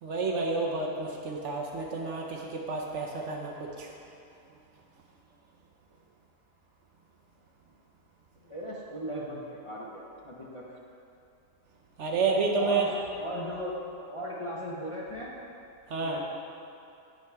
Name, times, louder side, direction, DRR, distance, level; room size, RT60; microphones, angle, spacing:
voice 1, 0.0-3.9 12.0-12.8 15.9-16.2, right 3 dB, 60° right, 0 dB, 1.0 m, -30 dB
voice 2, 8.4-10.8 12.3-12.9 13.1-13.8 14.1-15.3 16.0-16.3, equal, 25° left, -6 dB, 0.8 m, -38 dB
8.3 x 7.5 x 3.4 m, 2.6 s
omnidirectional pair, 1.5 m